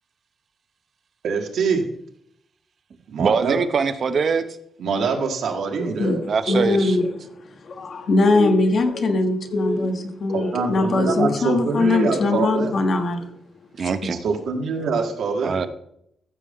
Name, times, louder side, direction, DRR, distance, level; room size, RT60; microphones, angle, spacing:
voice 1, 1.2-1.9 3.1-3.6 4.8-6.3 10.3-12.7 14.1-15.5, right 5 dB, 85° right, 2 dB, 1.7 m, -24 dB
voice 2, 3.2-4.5 6.3-7.0 13.8-14.2 15.4-15.7, right 5 dB, 50° right, 10 dB, 0.7 m, -22 dB
voice 3, 6.5-13.3 13.8-14.1, left 2 dB, 50° left, 5 dB, 1.3 m, -21 dB
14.5 x 6.6 x 3.7 m, 0.73 s
wide cardioid pair, 160°, 0 cm